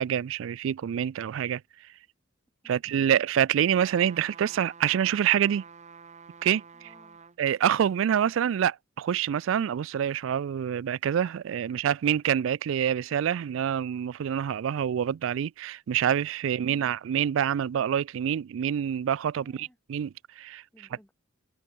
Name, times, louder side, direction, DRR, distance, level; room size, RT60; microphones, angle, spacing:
voice 1, 0.0-1.6 2.7-5.6 6.4-6.9 7.4-20.1 20.4-20.6, right 9 dB, 65° right, 0.3 m, -26 dB
voice 2, 2.6-3.1 6.7-7.2 11.7-11.8 16.4-16.9 19.4-19.8 20.7-21.1, equal, 5° left, 1.8 m, -59 dB
sound 1, 3.7-7.4 7.9-8.0, right 6 dB, 35° right, 0.9 m, -48 dB
head